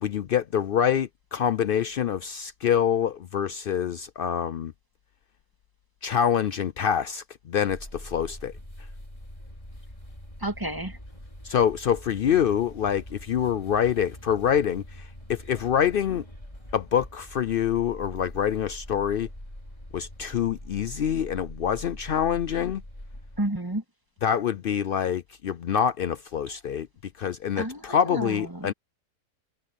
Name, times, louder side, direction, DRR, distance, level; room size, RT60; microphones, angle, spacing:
voice 1, 0.0-4.7 6.0-8.5 11.4-16.2 16.7-19.3 19.9-22.8 24.2-26.9 27.2-28.7, left 8 dB, 80° left, 0.5 m, -26 dB
sound 1, 7.7-23.4, left 1 dB, 20° left, 5.4 m, -43 dB
voice 2, 10.4-11.0 23.4-23.8 27.6-28.7, right 1 dB, 15° right, 2.3 m, -31 dB
omnidirectional pair, 1.6 m